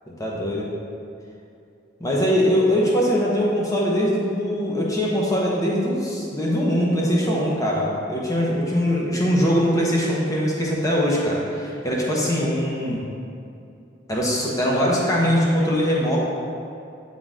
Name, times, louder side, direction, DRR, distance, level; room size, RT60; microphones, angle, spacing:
voice 1, 0.2-0.7 2.0-13.0 14.1-16.2, equal, 20° left, -4 dB, 1.0 m, -22 dB
8.7 x 3.9 x 3.7 m, 2.6 s
head